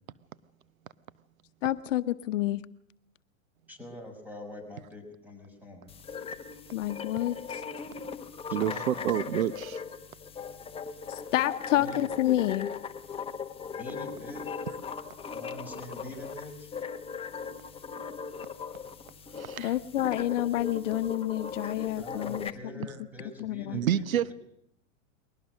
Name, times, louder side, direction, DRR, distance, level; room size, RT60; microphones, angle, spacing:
voice 1, 1.6-2.6 6.7-7.6 11.1-12.7 19.6-22.5 23.4-23.8, left 14 dB, 65° left, 12 dB, 1.0 m, -29 dB
voice 2, 3.7-5.9 8.5-9.2 11.8-12.1 13.7-14.6 15.3-16.7 22.0-24.3, left 1 dB, 5° right, 5 dB, 6.3 m, -44 dB
sound 1, 5.9-22.5, left 6 dB, 15° left, 1.1 m, -39 dB
voice 3, 8.5-9.8 19.4-19.7 23.7-24.3, right 10 dB, 90° right, 17 dB, 1.0 m, -28 dB
22.0 x 18.5 x 6.4 m, 0.71 s
hypercardioid pair, 130°, 40 cm